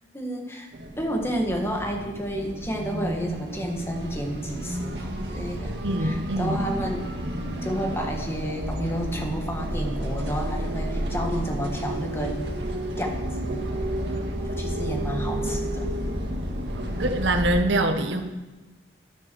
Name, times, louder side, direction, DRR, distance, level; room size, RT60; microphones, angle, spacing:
voice 1, 0.1-0.7 1.0-7.1 7.6-12.3 13.0-13.7 14.5-15.9, equal, 15° left, 2 dB, 1.5 m, -31 dB
sound 1, 0.7-17.6, right 1 dB, 70° right, 1.8 m, -31 dB
voice 2, 5.8-6.6 16.7-18.2, right 1 dB, 85° right, 6 dB, 1.2 m, -24 dB
12.0 x 12.0 x 4.6 m, 1.2 s
head